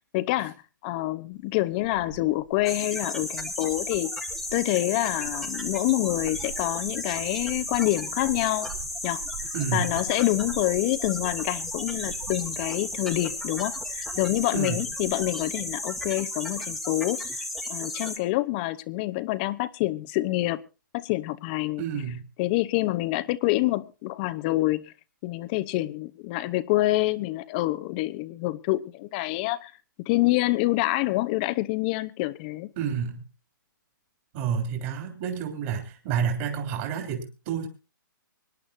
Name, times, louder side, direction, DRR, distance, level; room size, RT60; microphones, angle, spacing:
voice 1, 0.1-0.5 0.8-4.1 4.5-8.7 9.0-9.2 9.7-17.3 17.7-20.6 20.9-21.8 22.4-24.9 25.2-29.7 30.0-32.7, left 18 dB, 25° left, 0.8 m, -27 dB
Cricket, 1.3-2.8 3.3-16.3 16.6-17.1, right 7 dB, 60° right, 4.9 m, -45 dB
sound 1, 2.7-18.2, left 2 dB, ahead, 1.4 m, -34 dB
voice 2, 9.5-9.9 14.5-14.8 21.8-22.2 32.8-33.2 34.3-37.7, right 7 dB, 35° right, 3.3 m, -29 dB
25.0 x 11.0 x 2.6 m
hypercardioid pair, 155°, 11 cm